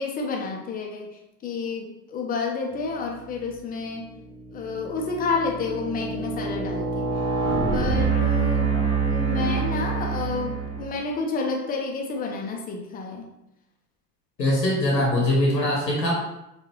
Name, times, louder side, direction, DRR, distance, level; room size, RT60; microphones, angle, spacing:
voice 1, 0.0-4.1 4.5-7.1 7.7-8.8 9.1-13.3, left 4 dB, 20° left, 1 dB, 0.6 m, -30 dB
sound 1, 3.2-3.6 4.1-11.0, right 4 dB, 10° right, 1.2 m, -26 dB
voice 2, 14.4-16.1, left 1 dB, 85° left, -2 dB, 0.9 m, -22 dB
4.4 x 2.5 x 3.1 m, 0.87 s
figure-of-eight pair, 75°, 49 cm